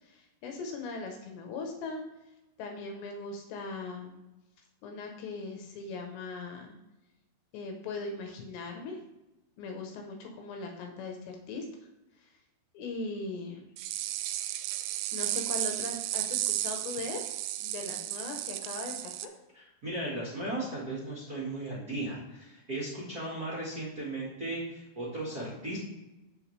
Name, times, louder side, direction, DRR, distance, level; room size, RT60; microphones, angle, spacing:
voice 1, 0.0-2.0 2.6-4.2 4.8-6.8 7.5-9.0 9.6-11.7 12.2-12.3 12.7-13.6 15.1-17.2 17.6-19.3, left 3 dB, 80° left, 2 dB, 3.1 m, -39 dB
sound 1, 13.8-19.3, right 13 dB, 90° right, 2.9 m, -34 dB
voice 2, 19.5-25.8, right 1 dB, 50° right, -8 dB, 1.0 m, -36 dB
15.0 x 5.2 x 3.3 m, 0.98 s
omnidirectional pair, 5.1 m